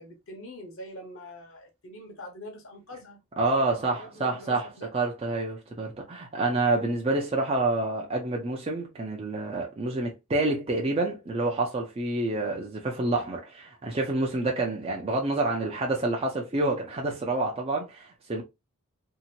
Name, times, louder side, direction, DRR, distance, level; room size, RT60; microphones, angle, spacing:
voice 1, 0.0-3.2 3.6-4.9, left 1 dB, 65° left, 1.0 m, -44 dB
voice 2, 3.4-18.4, right 2 dB, 25° right, 0.5 m, -28 dB
2.8 x 2.5 x 2.8 m
head